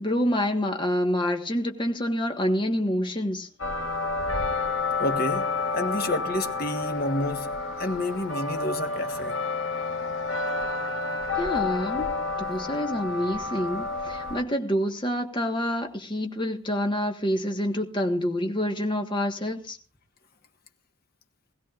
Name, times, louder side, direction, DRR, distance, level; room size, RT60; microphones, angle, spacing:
voice 1, 0.0-3.5 11.4-12.1 12.4-19.8, equal, 20° left, 1.4 m, -27 dB
sound 1, 3.6-14.4, left 3 dB, 65° left, 1.6 m, -30 dB
voice 2, 5.0-5.5 5.7-7.5 7.8-9.4, left 1 dB, 45° left, 1.4 m, -29 dB
20.5 x 16.0 x 2.5 m
head